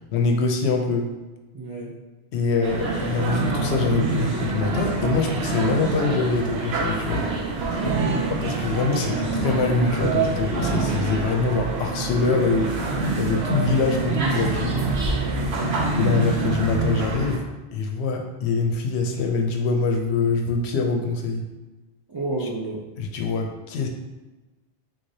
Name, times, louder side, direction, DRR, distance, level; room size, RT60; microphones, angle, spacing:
voice 1, 0.1-1.1 2.3-7.2 8.4-12.7 13.2-14.8 16.0-17.4 17.7-21.4 23.0-23.9, left 4 dB, 85° left, 3 dB, 0.9 m, -24 dB
voice 2, 1.5-1.9 7.8-8.3 15.3-15.7 22.1-22.8, right 2 dB, 45° right, -5 dB, 0.3 m, -31 dB
sound 1, 2.6-17.4, right 3 dB, 75° right, 0.9 m, -26 dB
3.7 x 3.2 x 2.7 m, 1.2 s
omnidirectional pair, 1.1 m